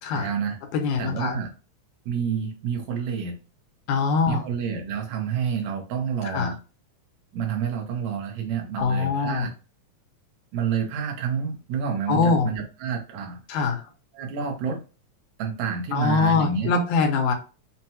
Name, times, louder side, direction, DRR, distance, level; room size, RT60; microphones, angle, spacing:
voice 1, 0.1-0.6 1.0-1.5 2.1-3.4 4.3-6.6 7.3-9.5 10.5-13.4 14.1-14.8 15.4-16.7, right 7 dB, 75° right, 3 dB, 2.2 m, -29 dB
voice 2, 0.7-1.4 3.9-4.4 6.2-6.5 8.8-9.5 12.1-12.5 13.5-13.8 15.9-17.3, left 4 dB, 85° left, 4 dB, 2.1 m, -23 dB
5.6 x 2.2 x 2.8 m, 0.33 s
omnidirectional pair, 3.4 m